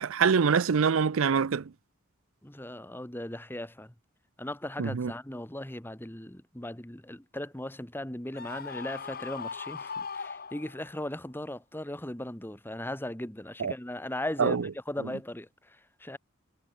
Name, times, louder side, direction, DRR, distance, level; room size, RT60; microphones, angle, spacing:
voice 1, 0.0-1.7 4.8-5.1 13.6-13.7 14.4-14.6, right 6 dB, 75° right, 0.5 m, -25 dB
voice 2, 2.4-3.9 4.4-16.2, left 1 dB, 10° left, 1.3 m, -38 dB
Screaming, 8.3-11.0, left 5 dB, 45° left, 1.6 m, -39 dB
head